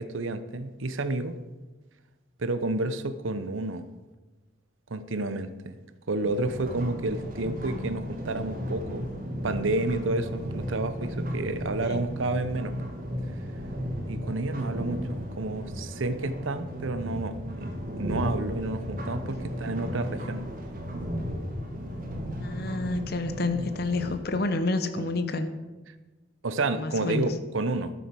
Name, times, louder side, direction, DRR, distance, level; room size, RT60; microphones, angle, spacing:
voice 1, 0.0-1.3 2.4-3.8 4.9-5.8 6.1-9.1 9.4-12.7 14.1-20.4 25.0-25.1 26.4-27.9, right 2 dB, 80° right, 11 dB, 0.8 m, -30 dB
sound 1, 6.2-24.2, equal, 45° right, 2.2 m, -35 dB
voice 2, 22.4-25.5 26.7-27.3, left 2 dB, 50° left, 10 dB, 0.8 m, -29 dB
11.5 x 7.0 x 6.2 m, 1.2 s
head